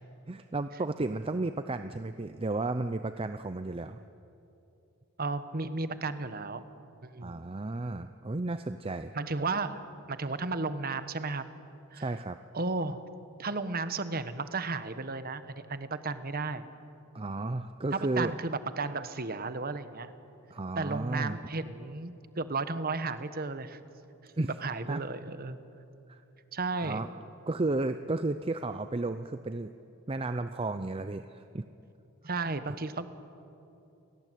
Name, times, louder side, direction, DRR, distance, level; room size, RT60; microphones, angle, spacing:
voice 1, 0.3-4.0 7.2-9.1 12.0-12.4 17.1-18.3 20.5-21.4 24.4-24.5 24.9-25.0 26.1-26.2 26.8-27.1 27.5-29.7 30.1-31.6, right 2 dB, 25° right, 9 dB, 0.6 m, -33 dB
voice 2, 5.2-6.6 7.0-7.4 9.1-11.4 11.9-12.0 12.5-13.0 13.4-16.7 17.9-20.1 20.8-23.8 24.4-25.6 26.5-27.0 32.3-33.1, right 3 dB, 45° right, 11 dB, 1.3 m, -34 dB
30.0 x 18.5 x 9.3 m, 2.8 s
head